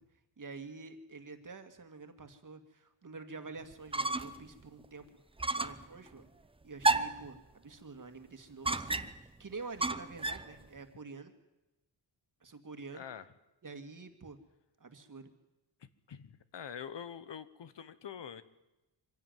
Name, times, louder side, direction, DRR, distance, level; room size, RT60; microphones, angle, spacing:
voice 1, 0.4-5.2 5.6-6.3 6.6-9.1 9.4-11.3 12.4-13.0 13.6-14.4 14.8-15.3, right 4 dB, 40° right, 7 dB, 2.2 m, -47 dB
sound 1, 3.7-4.5 4.8-4.9 5.4-5.9 6.8-7.3 8.6-9.3 9.8-10.5, right 2 dB, 10° right, 0.7 m, -31 dB
voice 2, 12.9-13.3 16.1-18.4, left 8 dB, 65° left, 14 dB, 1.2 m, -45 dB
24.5 x 16.5 x 9.3 m, 0.98 s
wide cardioid pair, 125°, 46 cm